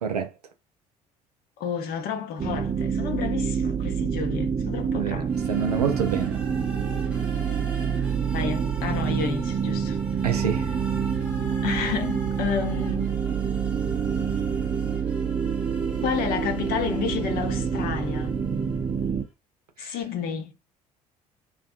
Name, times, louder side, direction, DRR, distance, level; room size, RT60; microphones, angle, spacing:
voice 1, 1.6-5.3 8.3-10.0 11.6-13.1 16.0-18.4 19.8-20.5, left 7 dB, 50° left, 0.7 m, -30 dB
sound 1, 2.4-19.2, right 7 dB, 30° right, 0.5 m, -27 dB
sound 2, 5.3-19.1, equal, 5° right, 0.9 m, -43 dB
voice 2, 5.5-6.4 10.2-10.7 19.8-19.9, right 8 dB, 85° right, 0.4 m, -27 dB
2.5 x 2.2 x 2.5 m
figure-of-eight pair, 55°, 20 cm